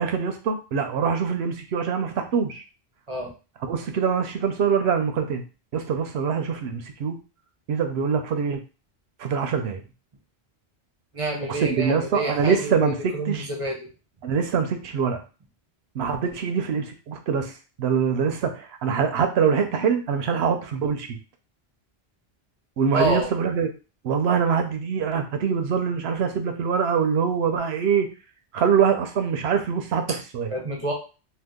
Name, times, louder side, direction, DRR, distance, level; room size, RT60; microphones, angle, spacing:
voice 1, 0.0-2.6 3.7-5.4 5.7-7.2 7.7-8.6 9.2-9.8 11.6-13.5 14.2-15.2 16.0-17.5 17.8-21.2 22.8-23.7 24.0-28.1 28.5-30.5, right 6 dB, 80° right, 6 dB, 0.8 m, -24 dB
voice 2, 11.1-13.9 22.9-23.3 30.5-30.9, right 2 dB, 35° right, 0 dB, 0.7 m, -28 dB
2.8 x 2.3 x 3.5 m, 0.33 s
omnidirectional pair, 1.1 m